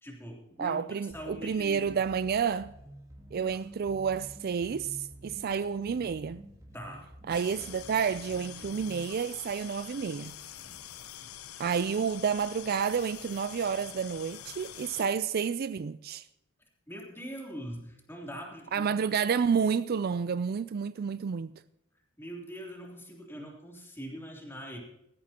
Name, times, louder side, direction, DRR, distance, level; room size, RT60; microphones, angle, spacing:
voice 1, 0.0-2.0 6.7-7.0 10.6-10.8 11.2-11.4 16.9-18.9 22.2-24.8, equal, 10° left, 3.0 m, -43 dB
voice 2, 0.6-2.7 3.3-6.4 7.3-10.4 11.6-16.3 18.7-21.5, right 6 dB, 45° right, 0.4 m, -30 dB
sound 1, 1.1-9.1, right 1 dB, 15° right, 2.2 m, -50 dB
sound 2, 7.3-15.1, left 10 dB, 85° left, 0.9 m, -46 dB
17.5 x 14.5 x 2.9 m
head